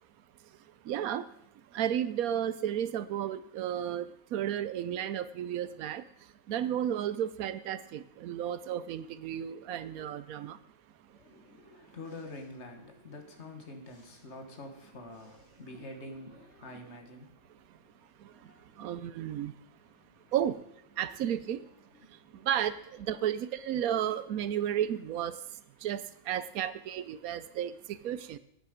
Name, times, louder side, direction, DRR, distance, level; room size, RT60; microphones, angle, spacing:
voice 1, 0.9-1.2 1.7-4.0 4.3-6.0 6.5-10.6 18.8-19.5 20.3-20.6 21.0-21.6 22.5-22.7 23.1-25.3 25.8-26.0 26.3-27.7 28.0-28.4, right 10 dB, 80° right, 14 dB, 1.1 m, -32 dB
voice 2, 11.1-20.3 20.9-21.1 21.6-21.7 21.9-22.5 23.9-24.0 24.5-24.6, left 2 dB, 55° left, 5 dB, 1.7 m, -48 dB
9.8 x 9.1 x 5.1 m, 0.72 s
omnidirectional pair, 1.5 m